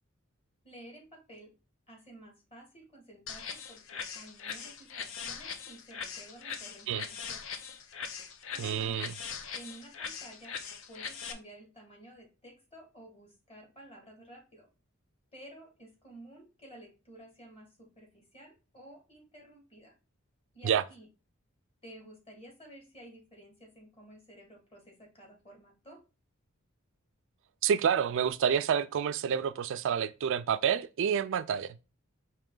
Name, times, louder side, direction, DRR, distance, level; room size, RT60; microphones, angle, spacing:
voice 1, 0.6-1.5 1.9-7.5 8.5-9.0 9.5-10.6 10.9-14.7 15.3-20.0 20.5-21.1 21.8-26.0, right 1 dB, 25° left, 1.7 m, -52 dB
sound 1, 3.3-11.3, left 6 dB, 65° left, 0.6 m, -41 dB
voice 2, 8.6-9.1 20.6-20.8 27.6-31.8, right 8 dB, 60° right, 0.3 m, -28 dB
4.8 x 2.9 x 3.7 m
head